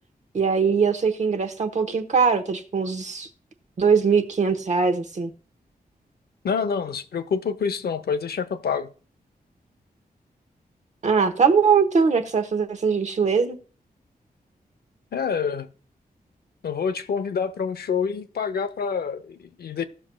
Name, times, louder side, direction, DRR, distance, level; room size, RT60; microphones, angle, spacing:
voice 1, 0.3-3.3 3.8-5.3 11.0-13.6, right 5 dB, 50° right, 1.0 m, -21 dB
voice 2, 6.4-8.9 15.1-15.7 16.6-19.8, left 6 dB, 85° left, 0.7 m, -27 dB
17.5 x 6.2 x 2.2 m
wide cardioid pair, 165°, 16 cm